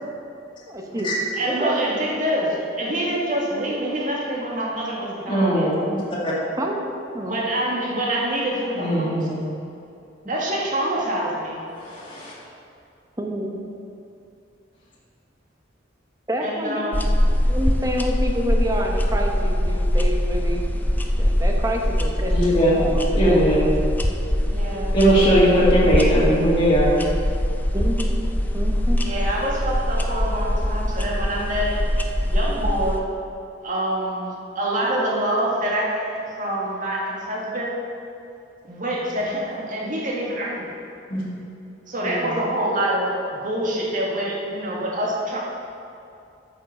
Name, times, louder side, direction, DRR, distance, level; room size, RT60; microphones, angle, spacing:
voice 1, 0.7-1.1 1.4-1.8 6.6-7.4 13.2-13.6 16.3-16.9 17.5-20.6 20.9-23.4 27.7-28.2 28.5-29.0 42.0-42.3, equal, 20° right, 1 dB, 1.0 m, -28 dB
voice 2, 1.4-5.7 7.2-9.1 10.3-11.6 16.4-17.1 24.5-25.0 25.4-25.7 29.0-31.8 32.3-33.0 33.6-37.8 38.7-40.7 41.9-43.2 43.4-45.4, right 1 dB, 45° right, -3 dB, 2.0 m, -26 dB
voice 3, 5.3-5.7 6.2-6.3 8.8-9.4 11.8-12.3 22.3-22.8 23.1-23.6 24.9-26.9 41.1-41.3, equal, 25° left, -8 dB, 2.1 m, -19 dB
sound 1, 16.9-33.0, equal, 10° left, 0.5 m, -22 dB
9.1 x 6.4 x 6.5 m, 2.6 s
head